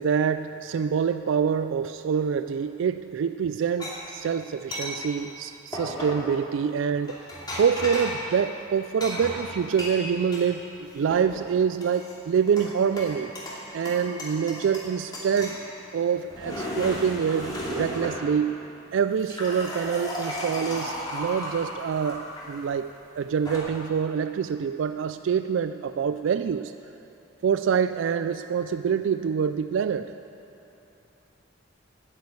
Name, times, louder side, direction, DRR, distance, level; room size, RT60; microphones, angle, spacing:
voice 1, 0.0-7.2 7.6-13.3 13.7-15.6 15.9-18.6 18.9-22.9 23.2-26.7 27.4-30.1, right 7 dB, 70° right, 11 dB, 0.3 m, -26 dB
sound 1, 3.8-3.9 4.7-4.9 5.7-6.2 7.0-8.2 9.0-10.5 10.8-11.4 11.8-12.7 13.0-13.6 13.8-14.9 15.1-15.6 16.1-18.2 19.0-22.4 23.2-23.6, left 1 dB, 20° left, 2.6 m, -34 dB
10.5 x 9.8 x 8.2 m, 2.9 s
head